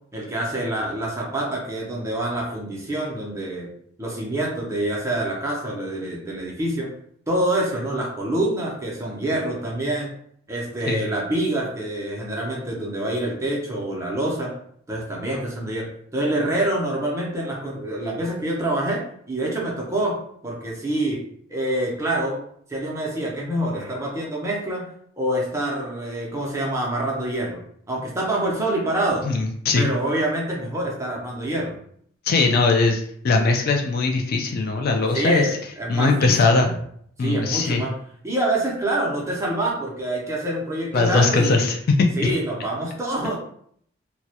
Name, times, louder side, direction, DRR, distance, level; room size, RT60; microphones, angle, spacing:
voice 1, 0.1-3.7 4.0-6.9 7.3-10.1 10.5-14.5 14.9-21.2 21.5-22.4 22.7-24.9 25.2-27.6 27.9-29.2 29.7-31.8 35.1-36.8 37.2-37.9 38.2-41.7 42.2-43.3, right 1 dB, 15° right, -3 dB, 0.5 m, -26 dB
voice 2, 29.2-29.9 32.3-35.5 35.9-36.7 37.2-37.8 40.9-41.8 42.2-42.3, left 3 dB, 50° left, 3 dB, 0.3 m, -20 dB
2.2 x 2.0 x 2.7 m, 0.64 s
head